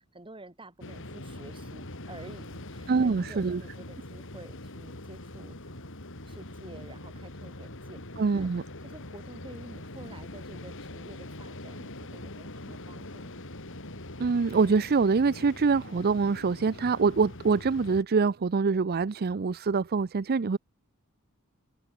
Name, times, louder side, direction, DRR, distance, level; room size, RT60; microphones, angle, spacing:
voice 1, 0.0-5.6 6.3-8.0 8.3-8.5 8.8-13.4, right 2 dB, 25° right, 4.7 m, -49 dB
sound 1, 0.8-18.0, left 1 dB, 60° left, 4.4 m, -43 dB
voice 2, 2.9-3.6 8.2-8.6 14.2-20.6, right 4 dB, 45° right, 0.5 m, -25 dB
head